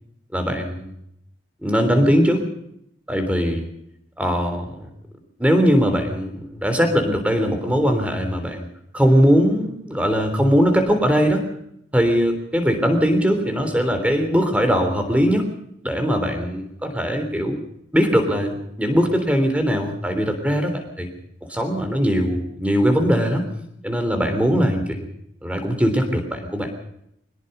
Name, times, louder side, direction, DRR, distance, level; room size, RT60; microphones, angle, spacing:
voice 1, 0.3-0.9 1.6-2.4 3.1-3.6 4.2-4.9 5.4-8.7 8.9-11.4 11.9-15.5 15.8-17.6 17.9-21.1 21.5-23.5 23.8-25.0 25.4-26.7, equal, 5° right, 6 dB, 3.5 m, -20 dB
23.5 x 20.0 x 5.5 m, 0.77 s
head